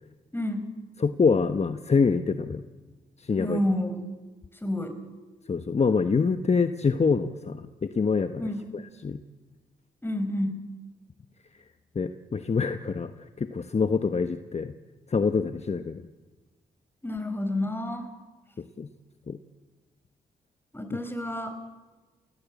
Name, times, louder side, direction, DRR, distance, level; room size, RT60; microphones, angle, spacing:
voice 1, 0.3-0.7 3.4-4.0 4.6-5.0 8.4-8.6 10.0-10.6 17.0-18.1 20.7-21.6, left 1 dB, 15° left, 8 dB, 4.5 m, -29 dB
voice 2, 1.0-2.6 3.2-3.6 5.5-9.2 11.9-13.1 13.4-14.7 15.1-16.0 18.8-18.9 19.3-19.4 20.9-21.0, left 5 dB, 40° left, 10 dB, 1.2 m, -25 dB
29.0 x 17.0 x 8.3 m, 1.3 s
supercardioid pair, 50°, 17 cm